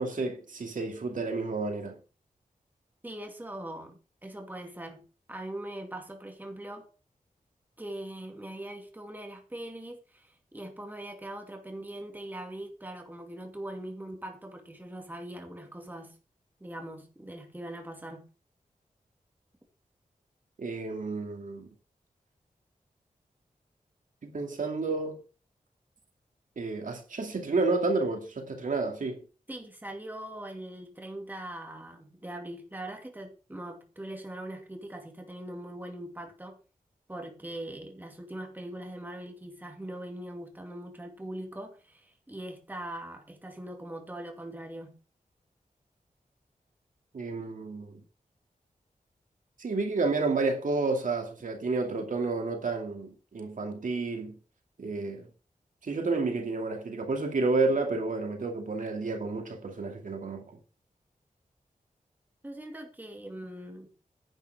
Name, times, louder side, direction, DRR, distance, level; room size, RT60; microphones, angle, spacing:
voice 1, 0.0-2.0 20.6-21.7 24.2-25.2 26.6-29.2 47.1-48.0 49.6-54.3 54.8-55.3 55.8-60.5, right 3 dB, 65° right, 2.4 m, -30 dB
voice 2, 3.0-6.9 7.8-16.2 16.6-18.3 29.5-36.6 37.1-45.0 62.4-63.9, right 1 dB, 15° right, 2.4 m, -41 dB
10.5 x 8.9 x 4.6 m
wide cardioid pair, 130°, 14 cm